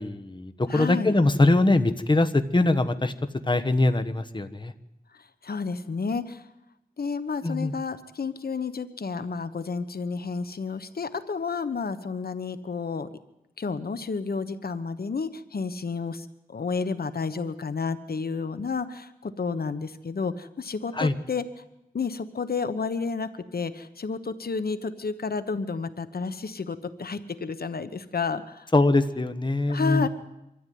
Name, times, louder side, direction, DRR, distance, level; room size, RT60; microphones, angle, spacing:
voice 1, 0.0-3.1 3.4-4.7 7.4-7.7 20.9-21.1 28.7-30.1, left 2 dB, 30° left, 9 dB, 1.2 m, -22 dB
voice 2, 0.7-1.1 5.1-6.5 7.0-13.1 13.6-21.4 21.9-28.7 29.7-30.1, left 5 dB, 75° left, 11 dB, 1.1 m, -31 dB
25.0 x 13.5 x 9.4 m, 0.90 s
wide cardioid pair, 80°, 16 cm